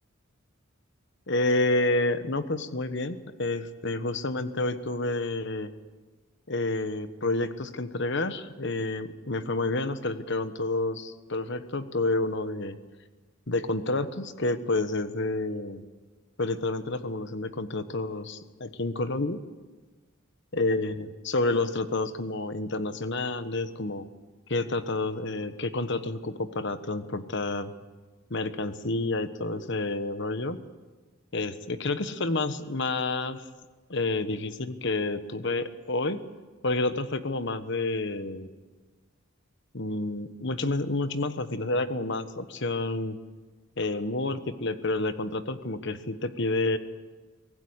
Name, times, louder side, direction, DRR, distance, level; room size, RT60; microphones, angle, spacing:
voice 1, 1.3-5.7 6.5-12.8 13.5-15.8 16.4-19.4 20.5-24.1 24.5-27.7 28.3-30.6 31.3-33.4 33.9-36.2 36.6-38.5 39.7-43.2 43.8-46.8, left 2 dB, 55° left, 11 dB, 1.3 m, -29 dB
24.5 x 17.5 x 8.1 m, 1.3 s
head